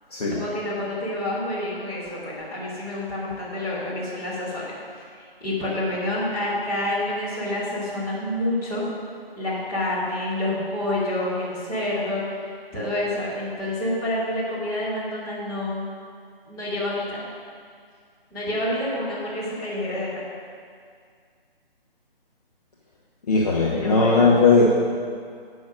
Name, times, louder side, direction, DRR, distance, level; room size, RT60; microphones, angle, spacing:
voice 1, 0.4-4.7 5.2-8.8 9.4-12.2 12.7-15.9 16.5-17.2 18.3-20.2 23.7-24.3, left 1 dB, 10° left, -11 dB, 2.4 m, -28 dB
voice 2, 23.3-24.6, left 4 dB, 40° left, -5 dB, 1.1 m, -18 dB
8.7 x 6.3 x 6.1 m, 2.1 s
figure-of-eight pair, 150°, 30 cm